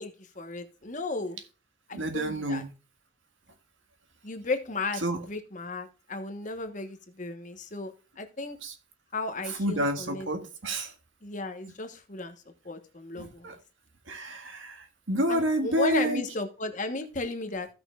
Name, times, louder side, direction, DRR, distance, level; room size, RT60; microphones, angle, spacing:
voice 1, 0.0-1.4 1.9-2.6 4.2-5.0 5.3-8.6 9.1-10.3 11.2-12.3 12.6-13.5 15.3-17.7, left 3 dB, 40° left, 1.2 m, -34 dB
voice 2, 1.9-2.7 5.0-5.3 8.6-8.7 9.5-10.9 13.1-13.6 14.1-16.2, equal, 85° right, 1.9 m, -29 dB
16.0 x 6.1 x 2.4 m
head